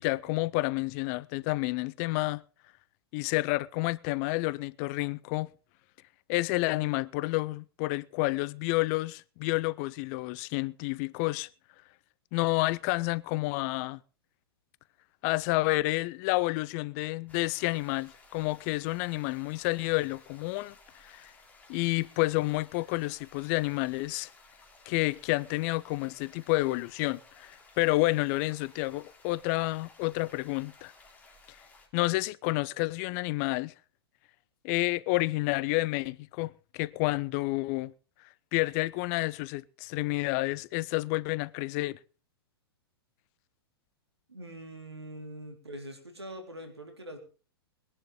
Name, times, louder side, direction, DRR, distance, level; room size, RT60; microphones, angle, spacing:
voice 1, 0.0-2.4 3.1-5.5 6.3-11.5 12.3-14.0 15.2-20.7 21.0-21.3 21.7-24.3 24.9-30.9 31.9-33.7 34.6-37.9 38.5-42.0, left 21 dB, 40° left, 0.6 m, -29 dB
sound 1, 17.3-31.9, left 3 dB, 10° left, 3.5 m, -57 dB
voice 2, 44.3-47.2, right 1 dB, 85° right, 3.5 m, -43 dB
21.5 x 11.0 x 3.9 m
figure-of-eight pair, 105°, 13 cm